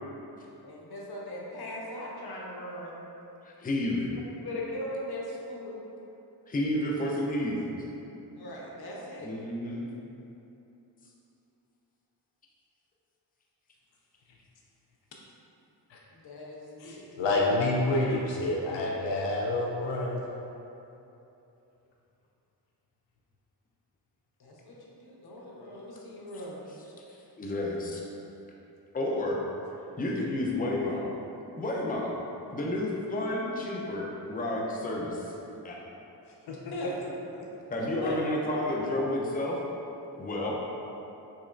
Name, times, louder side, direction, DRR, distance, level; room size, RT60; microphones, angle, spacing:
voice 1, 0.6-3.0 4.4-5.8 8.3-9.3 16.1-17.4 24.4-26.6 36.7-37.0 38.0-38.2, left 1 dB, 60° left, -4 dB, 0.9 m, -39 dB
voice 2, 3.4-4.2 6.5-7.7 9.2-9.9 27.4-28.0 28.9-29.4 30.0-31.1 31.6-32.2 32.5-35.4 35.6-35.8 37.7-39.6 40.2-40.5, left 1 dB, 20° left, -2 dB, 0.5 m, -30 dB
voice 3, 16.8-20.2 36.5-36.9, left 2 dB, 85° left, -2 dB, 0.5 m, -28 dB
4.2 x 3.0 x 2.5 m, 2.9 s
cardioid pair, 55°, 43 cm